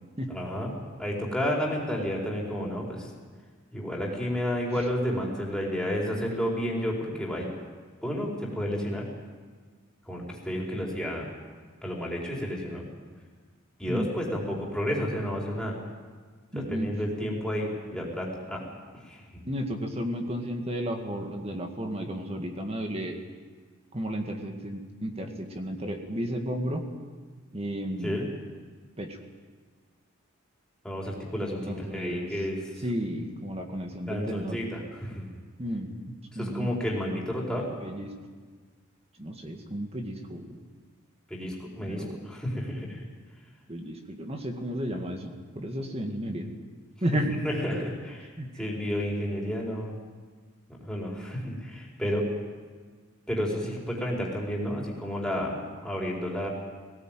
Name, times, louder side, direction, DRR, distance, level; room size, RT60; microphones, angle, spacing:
voice 1, 0.3-0.7 1.0-3.1 3.7-7.5 8.0-9.1 10.1-11.3 11.8-12.9 13.8-15.8 16.5-18.6 19.0-19.4 28.0-28.3 30.8-32.8 34.1-35.3 36.3-37.7 41.3-43.0 47.4-49.9 50.8-52.3 53.3-55.5 55.8-56.5, equal, 5° left, -3 dB, 4.7 m, -31 dB
voice 2, 16.5-16.9 19.5-23.2 23.9-26.8 27.5-28.3 29.0-29.2 31.7-32.3 32.8-34.6 35.6-36.7 37.8-38.1 39.2-40.6 41.9-42.2 43.7-46.5 47.0-47.3 48.4-48.5, equal, 30° right, 3 dB, 2.0 m, -33 dB
19.0 x 17.5 x 9.2 m, 1.5 s
head